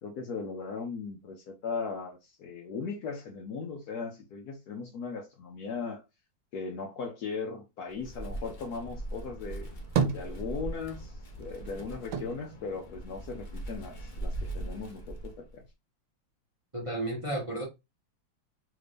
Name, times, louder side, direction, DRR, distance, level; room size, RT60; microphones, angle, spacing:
voice 1, 0.0-6.0 6.5-9.7 10.1-15.6, left 5 dB, 70° left, 1.0 m, -38 dB
Wind, 7.9-15.6, right 1 dB, 50° left, 0.6 m, -40 dB
sound 1, 9.5-11.0 11.3-13.7 14.0-14.9, right 6 dB, 80° right, 1.3 m, -34 dB
voice 2, 16.7-17.6, right 1 dB, 25° right, 0.8 m, -32 dB
3.4 x 2.6 x 3.3 m
omnidirectional pair, 2.1 m